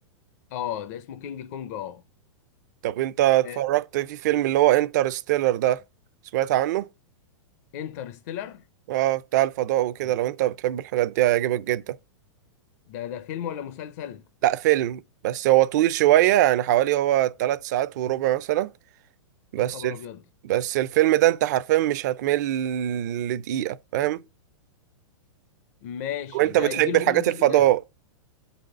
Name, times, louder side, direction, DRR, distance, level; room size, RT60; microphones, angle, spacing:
voice 1, 0.5-2.0 3.4-3.6 7.7-8.7 10.0-10.2 12.9-14.2 19.6-20.2 25.8-27.7, left 10 dB, 35° left, 0.4 m, -34 dB
voice 2, 2.8-5.8 6.3-6.9 8.9-12.0 14.4-18.7 19.5-20.0 20.4-24.2 26.3-27.9, right 14 dB, 35° right, 0.4 m, -22 dB
8.4 x 4.1 x 6.4 m
supercardioid pair, 170°, 16 cm